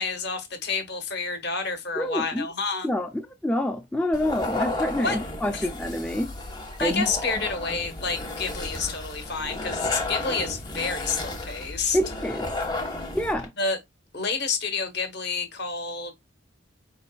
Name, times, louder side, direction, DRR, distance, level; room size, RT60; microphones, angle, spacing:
voice 1, 0.0-2.9 5.0-5.2 5.5-5.7 6.8-12.0 13.6-13.8 14.1-16.1, left 4 dB, 55° left, 1.3 m, -29 dB
voice 2, 2.0-2.5 2.8-6.3 6.8-7.1 11.9-12.5 13.1-13.5, left 1 dB, 5° left, 0.3 m, -27 dB
sound 1, 4.1-13.5, left 2 dB, 20° left, 0.9 m, -33 dB
5.0 x 4.0 x 2.3 m
head